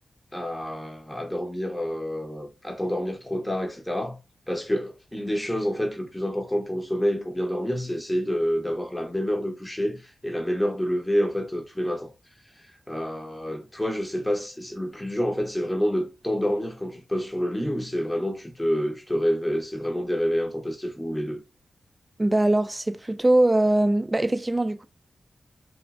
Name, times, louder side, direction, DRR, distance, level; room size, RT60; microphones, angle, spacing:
voice 1, 0.3-4.2 4.5-12.1 12.6-21.4, equal, 10° left, 0.7 m, -28 dB
voice 2, 22.2-24.8, right 1 dB, 25° right, 0.3 m, -22 dB
3.0 x 2.5 x 2.3 m
cardioid pair, 50°, 0 cm